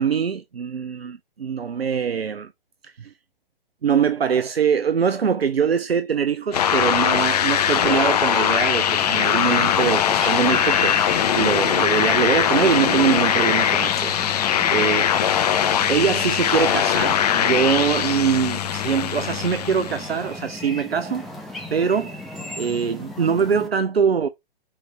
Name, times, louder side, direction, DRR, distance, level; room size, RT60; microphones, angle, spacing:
voice 1, 0.0-2.5 2.8-3.1 3.8-11.1 11.3-14.4 14.7-15.3 15.6-21.3 21.7-22.2 22.6-24.3, right 7 dB, 85° right, 0.5 m, -23 dB
sound 1, 6.5-20.2, left 9 dB, 40° left, 0.6 m, -21 dB
sound 2, 8.9-23.7, left 2 dB, ahead, 0.8 m, -36 dB
5.7 x 2.8 x 3.2 m
figure-of-eight pair, 120°, 30 cm